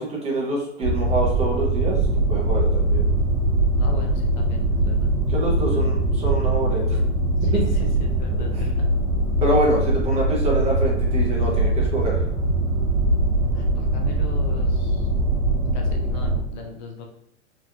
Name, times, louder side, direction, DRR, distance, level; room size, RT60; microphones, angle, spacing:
voice 1, 0.0-2.0 2.3-3.1 5.3-7.0 7.5-7.7 8.3-8.6 9.4-12.2, right 1 dB, 20° right, -3 dB, 0.6 m, -25 dB
sound 1, 0.8-16.4, right 1 dB, 40° right, 1.0 m, -22 dB
voice 2, 3.8-5.1 5.7-6.0 7.4-8.9 13.3-15.1 15.7-17.1, left 3 dB, 40° left, 2 dB, 0.4 m, -39 dB
2.9 x 2.3 x 2.3 m, 0.71 s
hypercardioid pair, 130°, 36 cm